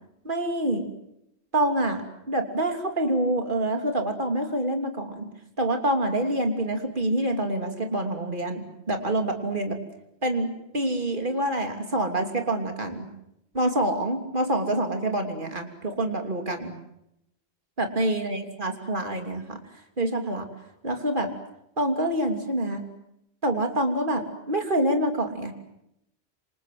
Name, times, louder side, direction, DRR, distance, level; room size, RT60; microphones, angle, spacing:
voice 1, 0.2-0.8 1.5-2.0 2.3-5.3 5.6-9.8 10.2-10.5 10.7-13.1 13.5-16.8 17.8-19.6 20.0-20.5 20.8-21.3 21.8-22.8 23.4-25.5, right 1 dB, 45° right, 5 dB, 3.3 m, -26 dB
27.5 x 26.5 x 7.7 m, 0.83 s
omnidirectional pair, 1.1 m